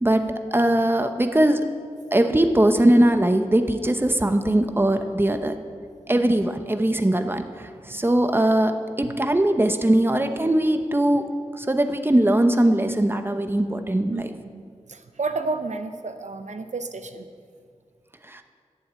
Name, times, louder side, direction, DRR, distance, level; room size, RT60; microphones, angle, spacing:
voice 1, 0.5-1.6 2.1-5.5 6.1-11.3 11.6-14.2 18.3-18.4, right 1 dB, 15° right, 7 dB, 0.9 m, -20 dB
voice 2, 14.1-14.6 14.9-17.3, right 3 dB, 70° right, 8 dB, 0.7 m, -32 dB
11.0 x 7.2 x 9.2 m, 2.1 s
wide cardioid pair, 55°, 13 cm